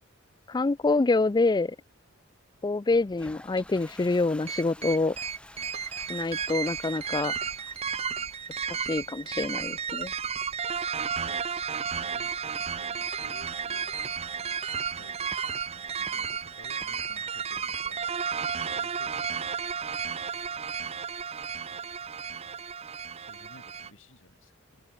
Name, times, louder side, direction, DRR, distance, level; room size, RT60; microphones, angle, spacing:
voice 1, 0.5-1.8 2.6-5.2 6.1-7.3 8.9-10.1, left 3 dB, 20° left, 0.4 m, -26 dB
Toilet flush, 2.9-14.5, left 1 dB, 5° left, 2.9 m, -53 dB
sound 1, 4.5-23.9, right 6 dB, 30° right, 0.7 m, -33 dB
voice 2, 11.2-14.5 14.9-19.9 21.7-21.9 23.2-24.8, left 2 dB, 75° left, 6.1 m, -55 dB
head